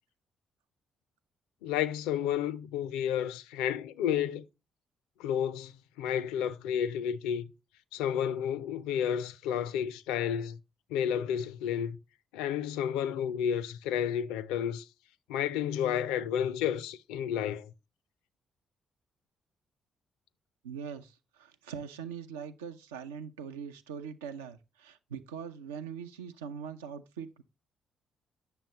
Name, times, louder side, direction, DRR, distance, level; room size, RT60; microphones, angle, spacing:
voice 1, 1.6-4.5 5.2-7.5 7.9-10.6 10.9-12.0 12.3-14.9 15.3-17.7, left 9 dB, 75° left, 0.4 m, -31 dB
voice 2, 20.6-27.4, right 7 dB, 80° right, 0.5 m, -42 dB
9.1 x 6.8 x 2.9 m
figure-of-eight pair, 40°, 0 cm